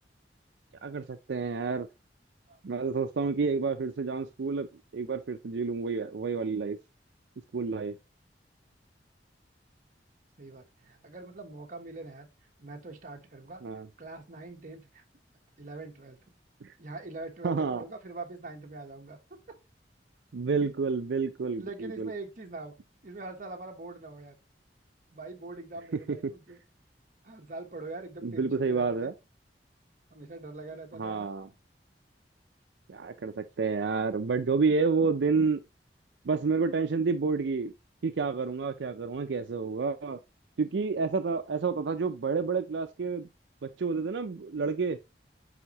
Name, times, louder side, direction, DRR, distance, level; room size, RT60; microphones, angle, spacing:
voice 1, 0.8-1.9 2.6-4.7 4.9-6.8 7.5-8.0 13.6-13.9 16.6-16.7 17.4-17.8 20.3-22.1 26.1-26.3 28.2-29.1 31.0-31.5 32.9-35.6 36.2-37.7 38.0-40.2 40.6-43.3 43.6-45.0, right 4 dB, 80° right, 0.5 m, -29 dB
voice 2, 10.4-12.3 12.6-13.6 14.0-15.0 15.6-16.2 16.8-19.2 19.5-19.6 21.6-22.8 23.0-24.3 25.1-26.6 27.2-29.1 30.1-31.3, right 3 dB, 50° right, 1.2 m, -43 dB
9.2 x 3.6 x 2.9 m
head